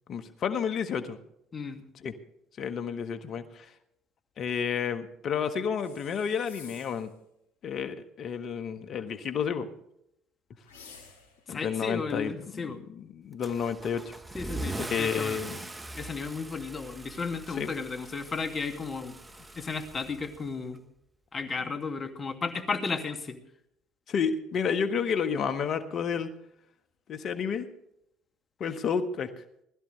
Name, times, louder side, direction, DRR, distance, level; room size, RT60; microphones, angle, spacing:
voice 1, 0.1-1.2 1.9-2.1 2.6-3.7 4.4-7.1 7.6-9.7 11.5-14.2 14.7-15.6 17.6-17.7 21.6-21.7 24.1-26.3 27.1-27.7 28.6-29.4, left 6 dB, 55° left, 9 dB, 1.6 m, -31 dB
voice 2, 1.5-1.8 11.5-12.8 14.3-15.4 16.0-19.2 19.6-20.8 21.3-23.4, left 4 dB, 35° left, 6 dB, 2.4 m, -34 dB
sound 1, 5.8-7.1 10.6-11.5, left 5 dB, 85° left, 2.8 m, -51 dB
Car / Engine starting / Accelerating revving vroom, 13.4-20.8, right 2 dB, 20° right, 1.3 m, -41 dB
21.0 x 13.5 x 3.4 m, 0.77 s
hypercardioid pair, 65°, 0 cm